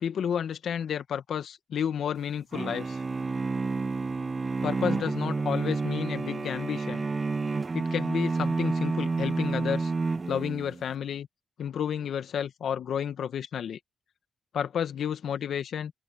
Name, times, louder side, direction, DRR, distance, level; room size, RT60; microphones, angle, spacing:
voice 1, 0.0-3.0 4.6-7.1 7.7-9.9 10.3-11.3 11.6-13.8 14.5-15.9, left 8 dB, 75° left, 1.4 m, -31 dB
sound 1, 2.5-10.8, right 4 dB, 40° right, 0.9 m, -30 dB
open air
supercardioid pair, 50°, 0 cm